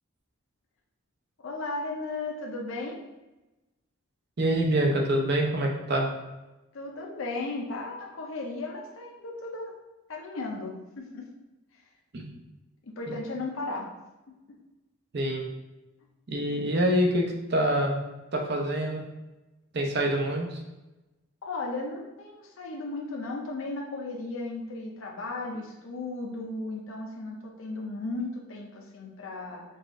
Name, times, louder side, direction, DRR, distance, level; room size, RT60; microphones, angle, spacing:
voice 1, 1.4-3.0 6.7-9.7 10.1-11.2 11.7-11.8 12.8-13.9 21.4-29.6, left 2 dB, 70° left, -1 dB, 0.5 m, -35 dB
voice 2, 4.4-6.1 12.1-12.3 13.1-13.2 15.1-15.4 16.3-18.0 18.3-19.0 19.7-20.6, right 1 dB, 50° right, 0 dB, 0.6 m, -26 dB
4.0 x 2.4 x 3.6 m, 1.0 s
head